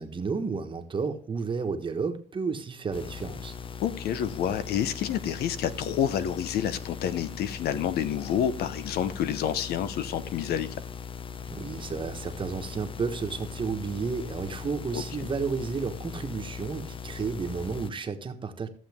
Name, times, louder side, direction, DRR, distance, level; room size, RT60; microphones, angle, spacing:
voice 1, 0.0-3.5 11.5-18.7, right 5 dB, 30° right, 6 dB, 1.3 m, -32 dB
sound 1, 2.9-17.9, left 7 dB, 30° left, 0.5 m, -40 dB
voice 2, 3.8-10.7 14.9-15.0, left 9 dB, 70° left, 14 dB, 0.9 m, -28 dB
14.5 x 7.3 x 3.6 m, 0.43 s
cardioid pair, 110°, 17 cm